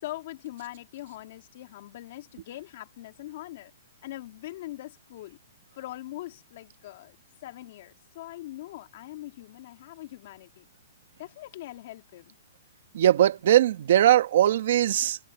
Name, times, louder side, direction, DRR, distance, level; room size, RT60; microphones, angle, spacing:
voice 1, 0.0-3.7 4.0-5.4 5.7-7.2 7.4-10.7 11.2-12.3, left 15 dB, 40° left, 3.2 m, -42 dB
voice 2, 12.9-15.2, right 11 dB, 50° right, 1.6 m, -20 dB
hypercardioid pair, 170°, 0 cm